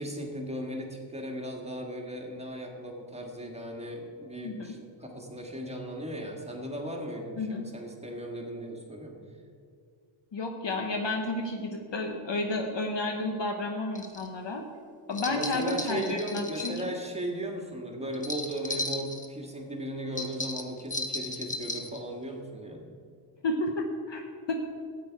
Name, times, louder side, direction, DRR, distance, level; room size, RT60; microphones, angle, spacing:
voice 1, 0.0-9.2 15.3-22.8, right 1 dB, 15° right, 0 dB, 1.7 m, -36 dB
voice 2, 10.3-14.6 15.1-16.9 23.4-24.5, left 2 dB, 60° left, 3 dB, 1.0 m, -31 dB
sound 1, 13.9-14.3 15.1-16.8 18.1-19.3 20.2-22.0, left 2 dB, 15° left, 0.8 m, -35 dB
13.5 x 8.6 x 4.6 m, 2.2 s
wide cardioid pair, 125°, 49 cm